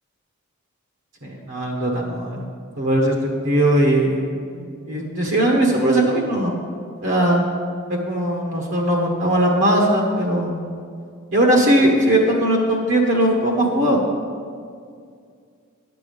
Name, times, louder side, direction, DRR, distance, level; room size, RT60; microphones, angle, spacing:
voice 1, 1.2-2.5 2.8-6.5 7.0-7.4 7.9-10.6 11.3-14.0, right 1 dB, 55° right, -1 dB, 1.3 m, -19 dB
10.5 x 8.4 x 5.2 m, 2.2 s
head